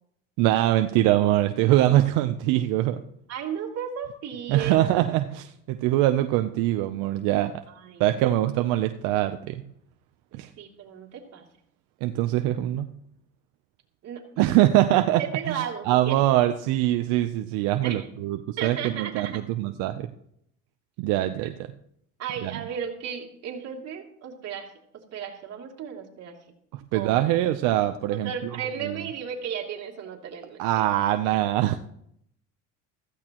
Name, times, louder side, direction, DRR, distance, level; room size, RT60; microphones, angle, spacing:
voice 1, 0.4-3.0 4.5-7.5 8.0-9.6 10.3-10.5 12.0-12.9 14.4-20.1 21.0-21.5 22.4-22.5 26.7-28.3 30.6-31.8, right 14 dB, 85° right, 8 dB, 0.7 m, -23 dB
voice 2, 3.3-4.9 7.7-8.2 10.6-11.4 14.0-14.2 15.2-16.2 17.8-18.1 18.6-19.4 22.2-26.4 26.9-27.3 28.1-30.9, right 8 dB, 55° right, 1 dB, 2.9 m, -34 dB
15.0 x 15.0 x 3.0 m, 0.72 s
cardioid pair, 120°, 31 cm